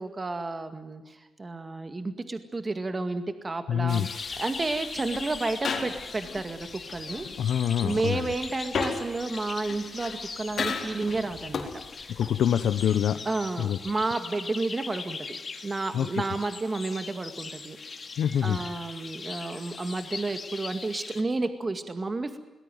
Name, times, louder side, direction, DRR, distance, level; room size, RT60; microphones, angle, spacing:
voice 1, 0.0-7.5 7.8-11.7 12.0-12.1 13.3-15.4 15.6-18.1 18.4-22.4, right 3 dB, 30° right, 9 dB, 2.1 m, -31 dB
voice 2, 3.7-4.1 7.2-8.3 12.1-13.3 13.6-13.8 15.9-16.2 18.2-18.6, left 9 dB, 85° left, 10 dB, 0.9 m, -26 dB
sound 1, 3.9-13.0, left 5 dB, 60° left, 4.1 m, -37 dB
sound 2, 3.9-21.2, left 4 dB, 40° left, 2.4 m, -41 dB
21.5 x 20.0 x 9.2 m, 1.1 s
cardioid pair, 100°, 0 cm